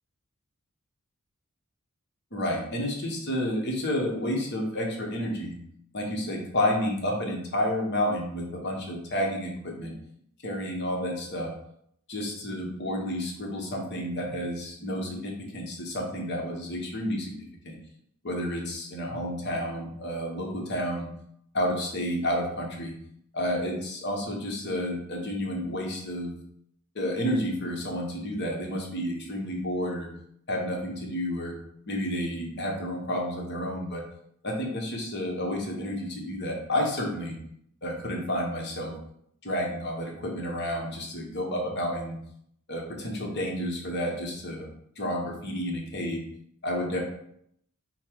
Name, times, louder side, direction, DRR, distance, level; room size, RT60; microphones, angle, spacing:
voice 1, 2.3-5.5 5.9-9.9 10.4-11.5 12.1-17.7 18.2-21.1 21.5-22.9 23.3-26.3 26.9-30.1 30.5-31.5 31.9-34.0 34.4-37.3 37.8-38.9 39.4-42.2 42.7-44.7 45.0-46.2 46.6-47.0, equal, 50° left, 0 dB, 1.0 m, -30 dB
5.5 x 2.1 x 4.5 m, 0.71 s
head